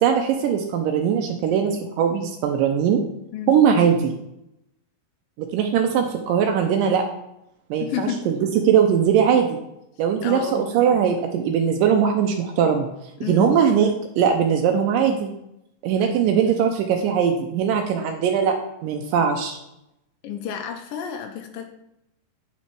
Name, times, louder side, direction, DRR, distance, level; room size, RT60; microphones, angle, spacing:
voice 1, 0.0-3.0 3.5-4.1 5.4-7.0 7.7-8.3 8.6-9.6 10.0-12.9 13.3-13.9 14.2-15.3 15.8-18.6 18.8-19.6, right 7 dB, 85° right, 3 dB, 2.2 m, -20 dB
voice 2, 7.8-8.2 10.2-10.6 13.2-13.5 16.0-16.1 20.2-21.6, left 8 dB, 90° left, 4 dB, 2.4 m, -30 dB
9.1 x 4.3 x 4.5 m, 0.85 s
omnidirectional pair, 4.0 m